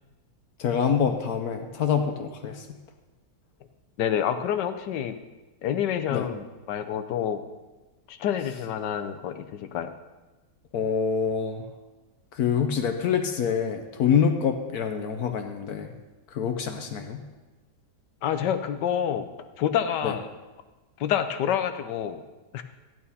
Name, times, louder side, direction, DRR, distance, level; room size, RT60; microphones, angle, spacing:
voice 1, 0.6-2.6 6.1-6.3 10.7-11.6 12.3-15.9 16.3-17.2 20.0-20.1, left 7 dB, 65° left, 6 dB, 1.2 m, -26 dB
voice 2, 4.0-5.2 5.6-7.4 8.1-9.9 18.2-19.3 19.6-20.3 21.0-22.2 22.5-22.6, left 9 dB, 85° left, 9 dB, 1.4 m, -28 dB
14.0 x 8.8 x 4.1 m, 1.2 s
omnidirectional pair, 1.8 m